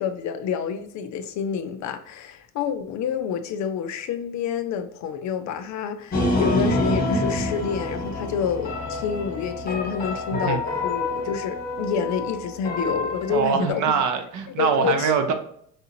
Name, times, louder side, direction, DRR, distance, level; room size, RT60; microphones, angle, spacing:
voice 1, 0.0-14.0 14.6-15.3, left 7 dB, 45° left, 0.4 m, -28 dB
sound 1, 6.1-13.7, left 2 dB, 25° left, 1.3 m, -27 dB
voice 2, 10.3-10.6 13.3-15.3, right 6 dB, 50° right, 0.7 m, -23 dB
4.8 x 2.4 x 2.8 m
supercardioid pair, 80°, 40 cm